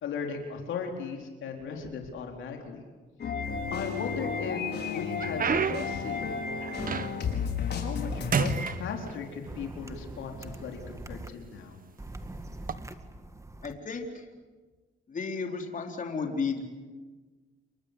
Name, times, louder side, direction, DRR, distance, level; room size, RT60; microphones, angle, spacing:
voice 1, 0.0-2.8 3.7-6.3 7.7-11.8, left 6 dB, 75° left, 2 dB, 4.0 m, -37 dB
sound 1, 3.2-8.5, left 5 dB, 55° left, 5.2 m, -33 dB
sound 2, 3.4-4.2 4.7-7.4 7.8-8.1 8.3-9.5 10.4-10.5 11.2-11.4 12.5-12.7, right 6 dB, 45° right, 1.5 m, -31 dB
sound 3, 6.8-6.9 8.1-8.3 9.5-11.3 12.0-13.7, right 2 dB, 15° right, 2.0 m, -42 dB
voice 2, 13.6-14.2 15.1-16.6, left 5 dB, 40° left, 2 dB, 3.9 m, -33 dB
29.0 x 23.5 x 8.2 m, 1.3 s
cardioid pair, 90°, 20 cm